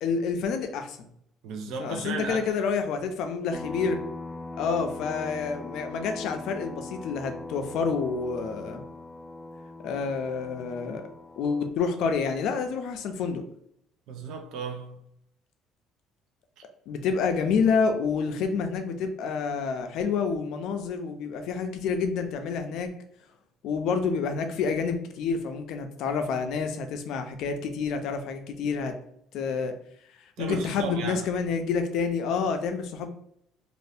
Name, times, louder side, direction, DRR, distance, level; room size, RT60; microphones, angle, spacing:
voice 1, 0.0-1.0 1.8-4.0 4.6-8.8 9.8-11.1 11.4-13.4 16.9-22.9 23.6-29.0 29.3-29.7 30.4-33.1, left 5 dB, 65° left, 0.4 m, -28 dB
voice 2, 1.4-2.5 14.1-15.0 30.4-31.3, right 5 dB, 70° right, 0.5 m, -35 dB
sound 1, 3.5-11.7, left 3 dB, 5° left, 0.3 m, -40 dB
2.6 x 2.5 x 3.3 m
cardioid pair, 140°, 0 cm